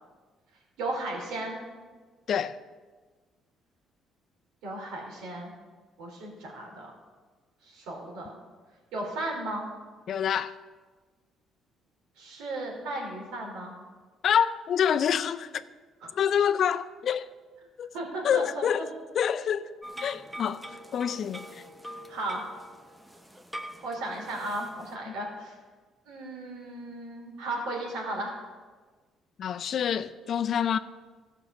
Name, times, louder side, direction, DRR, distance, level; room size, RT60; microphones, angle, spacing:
voice 1, 0.8-1.6 4.6-5.5 6.0-6.9 7.6-8.4 8.9-9.7 12.2-13.7 16.0-16.1 17.9-18.7 22.1-22.4 23.8-25.5 26.1-28.4, right 2 dB, 85° right, 3.2 m, -35 dB
voice 2, 2.3-2.6 10.1-10.6 14.2-15.6 16.2-17.3 17.8-17.9 18.2-18.8 19.1-19.7 20.0-21.6 25.1-25.2 29.4-30.8, left 8 dB, 55° left, 0.5 m, -27 dB
sound 1, 19.8-25.0, equal, 10° right, 0.8 m, -44 dB
14.0 x 5.5 x 6.1 m
cardioid pair, 100°, 0 cm